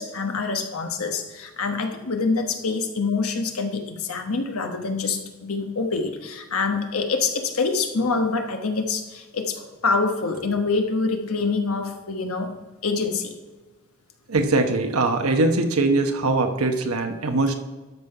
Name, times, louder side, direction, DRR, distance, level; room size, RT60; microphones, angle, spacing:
voice 1, 0.0-12.5 12.8-13.3, left 4 dB, 80° left, 5 dB, 1.1 m, -26 dB
voice 2, 14.3-17.6, right 2 dB, 85° right, 5 dB, 1.0 m, -21 dB
12.5 x 5.4 x 4.8 m, 1.3 s
head